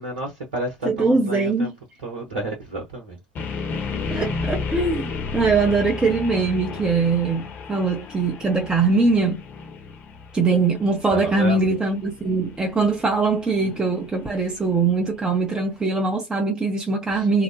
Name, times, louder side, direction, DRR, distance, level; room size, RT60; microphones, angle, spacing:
voice 1, 0.0-1.7 2.0-3.2 3.5-3.7 4.0-4.2 11.1-11.7 13.7-13.8 17.1-17.3, right 1 dB, 75° right, 0.9 m, -31 dB
voice 2, 0.8-1.7 4.1-9.4 10.3-17.4, right 4 dB, 15° right, 0.6 m, -22 dB
sound 1, 3.4-15.3, left 4 dB, 40° left, 0.8 m, -33 dB
2.8 x 2.1 x 2.6 m
figure-of-eight pair, 70°, 5 cm